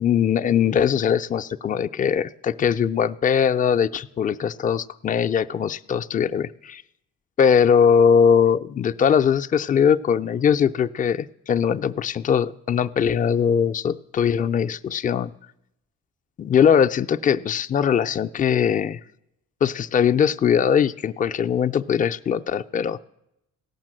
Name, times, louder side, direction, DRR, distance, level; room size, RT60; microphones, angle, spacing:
voice 1, 0.0-6.8 7.4-15.3 16.4-19.0 19.6-23.0, left 7 dB, 30° left, 9 dB, 0.4 m, -21 dB
16.5 x 5.9 x 7.5 m, 0.84 s
cardioid pair, 90°, 30 cm